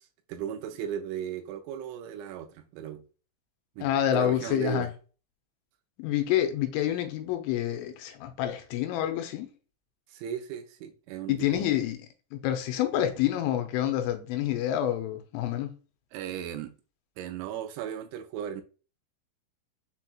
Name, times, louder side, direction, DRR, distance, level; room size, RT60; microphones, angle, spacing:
voice 1, 0.0-3.0 3.8-4.9 10.1-11.7 16.1-16.7 17.2-18.6, right 9 dB, 85° right, 2.8 m, -36 dB
voice 2, 3.8-4.9 6.0-9.5 11.3-12.0 12.3-15.7, left 11 dB, 85° left, 3.1 m, -28 dB
7.0 x 2.8 x 2.3 m
omnidirectional pair, 5.6 m